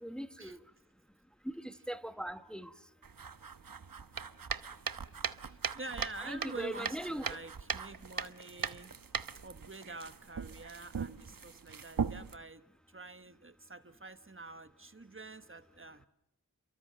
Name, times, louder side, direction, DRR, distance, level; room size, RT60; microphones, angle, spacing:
voice 1, 0.0-0.6 1.6-2.7 6.3-7.3, equal, ahead, 1.2 m, -40 dB
sound 1, 3.0-12.4, right 6 dB, 75° right, 1.0 m, -40 dB
voice 2, 5.3-9.0 9.2-16.1, right 3 dB, 35° right, 1.2 m, -47 dB
29.5 x 23.5 x 7.6 m
wide cardioid pair, 60°, 34 cm